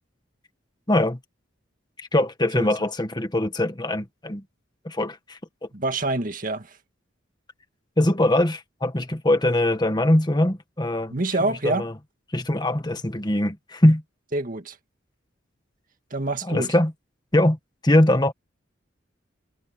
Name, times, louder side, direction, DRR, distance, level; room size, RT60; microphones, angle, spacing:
voice 1, 0.9-1.2 2.0-4.4 4.8-5.7 8.0-11.1 11.6-11.9 12.3-14.0 16.5-16.9 17.3-17.6 17.8-18.3, left 1 dB, 20° left, 1.6 m, -22 dB
voice 2, 5.7-6.8 11.1-11.9 14.3-14.8 16.1-16.7, right 2 dB, 45° right, 2.0 m, -26 dB
head